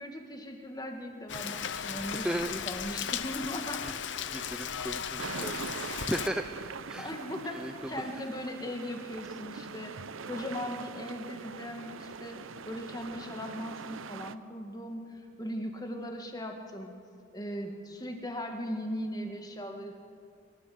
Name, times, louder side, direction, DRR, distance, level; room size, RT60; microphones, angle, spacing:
voice 1, 0.0-3.8 7.0-10.0 10.3-16.9 17.3-19.9, equal, 20° left, 3 dB, 1.9 m, -38 dB
Rain, 1.3-6.3, left 8 dB, 65° left, 0.8 m, -36 dB
voice 2, 1.9-2.5 2.8-3.0 3.8-3.9 4.3-6.5 6.9-7.1 7.4-8.0, right 1 dB, 5° right, 7 dB, 0.5 m, -36 dB
sound 1, 5.2-14.4, right 5 dB, 85° right, 0.7 m, -42 dB
25.0 x 14.5 x 7.9 m, 2.3 s
head